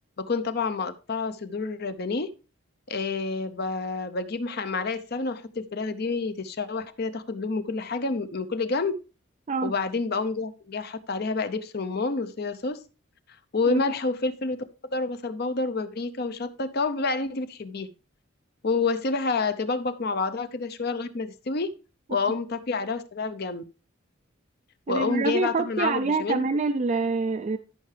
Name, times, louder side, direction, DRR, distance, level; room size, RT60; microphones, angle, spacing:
voice 1, 0.2-2.3 2.9-8.9 9.6-12.8 13.5-14.7 14.9-17.9 18.6-21.7 22.1-23.6 24.9-26.5, left 4 dB, 45° left, 12 dB, 0.6 m, -28 dB
voice 2, 24.9-27.6, right 4 dB, 35° right, 7 dB, 0.3 m, -26 dB
13.5 x 5.5 x 3.3 m, 0.34 s
head